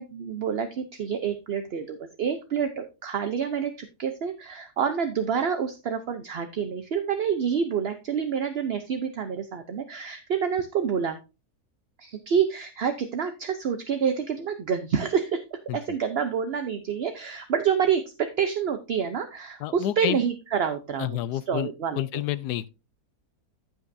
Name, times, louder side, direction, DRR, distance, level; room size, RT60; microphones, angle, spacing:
voice 1, 0.0-11.2 12.0-15.4 15.7-21.2 21.5-22.0, right 7 dB, 50° right, 0.8 m, -28 dB
voice 2, 19.6-20.2 21.0-22.7, left 13 dB, 85° left, 1.2 m, -30 dB
15.0 x 5.4 x 2.6 m
omnidirectional pair, 1.7 m